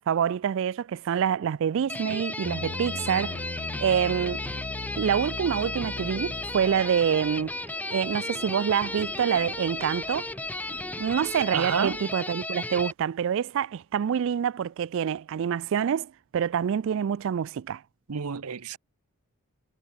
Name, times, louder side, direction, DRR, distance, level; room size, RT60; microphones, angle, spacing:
voice 1, 0.0-4.5 5.0-7.5 7.9-10.2 11.0-17.8, right 8 dB, 60° right, 0.3 m, -26 dB
sound 1, 1.9-12.9, left 2 dB, 5° left, 0.9 m, -34 dB
sound 2, 2.4-6.9, left 4 dB, 40° left, 0.4 m, -38 dB
sound 3, 2.6-12.1, right 1 dB, 20° right, 6.1 m, -47 dB
voice 2, 11.5-12.0 18.1-18.8, right 6 dB, 85° right, 0.7 m, -29 dB
head